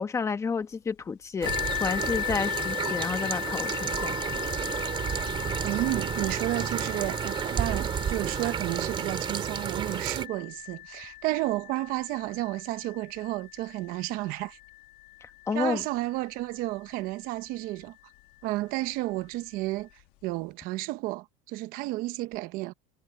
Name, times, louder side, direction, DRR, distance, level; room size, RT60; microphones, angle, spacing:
voice 1, 0.0-1.5 1.8-4.2 15.2-15.8, left 5 dB, 15° left, 1.3 m, -30 dB
sound 1, 1.4-10.3, right 8 dB, 30° right, 2.6 m, -31 dB
sound 2, 1.5-17.0 17.8-17.9 18.4-18.5, left 19 dB, 65° left, 1.7 m, -38 dB
voice 2, 5.6-14.6 15.5-18.0 18.4-22.7, right 18 dB, 55° right, 0.9 m, -32 dB
cardioid pair, 150°, 18 cm